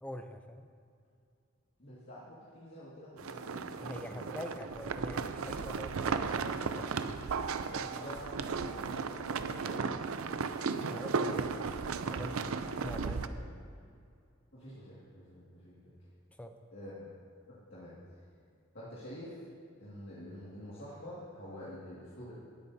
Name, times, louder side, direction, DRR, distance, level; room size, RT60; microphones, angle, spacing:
voice 1, 0.0-0.7 3.8-7.2 10.9-11.8 12.0-13.4 16.4-16.6, equal, 5° left, 6 dB, 0.5 m, -44 dB
voice 2, 1.8-4.4 7.7-10.0 12.3-12.9 13.2-13.5 14.5-15.9 16.7-16.9 17.7-17.9 18.7-19.4 19.8-22.3, equal, 55° left, -9 dB, 2.1 m, -47 dB
sound 1, 3.2-13.3, right 5 dB, 90° right, 0.5 m, -35 dB
19.0 x 8.5 x 2.8 m, 2.3 s
head